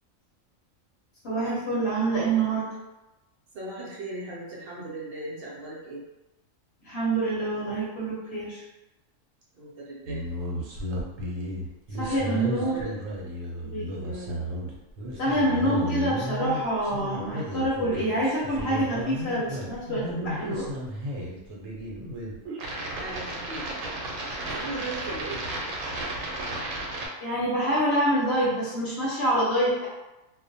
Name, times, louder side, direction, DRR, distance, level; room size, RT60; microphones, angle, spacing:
voice 1, 1.2-2.7 6.8-8.6 12.0-12.8 13.6-13.9 15.2-20.7 27.2-29.9, right 1 dB, 60° left, -7 dB, 0.9 m, -26 dB
voice 2, 3.5-6.0 9.5-10.2 12.0-13.0 14.0-14.4 22.9-23.9 24.4-25.4, right 2 dB, 60° right, -5 dB, 0.6 m, -38 dB
sound 1, 10.1-27.1, equal, 80° right, 1.0 m, -33 dB
2.3 x 2.1 x 2.6 m, 1.0 s
omnidirectional pair, 1.4 m